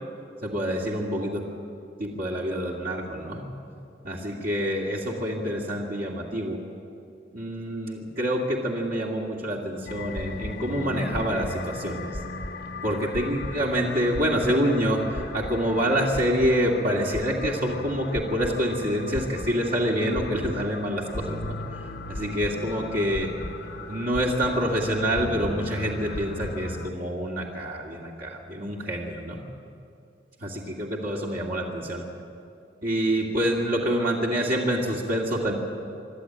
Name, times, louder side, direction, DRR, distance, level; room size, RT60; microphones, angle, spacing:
voice 1, 0.4-1.4 2.0-3.5 4.0-6.6 7.3-12.1 12.8-21.8 22.1-23.3 23.9-29.4 30.4-32.0 32.8-35.5, equal, 50° right, -3 dB, 2.4 m, -27 dB
sound 1, 9.9-26.9, left 2 dB, 60° left, 1.1 m, -36 dB
24.5 x 13.0 x 8.9 m, 2.5 s
head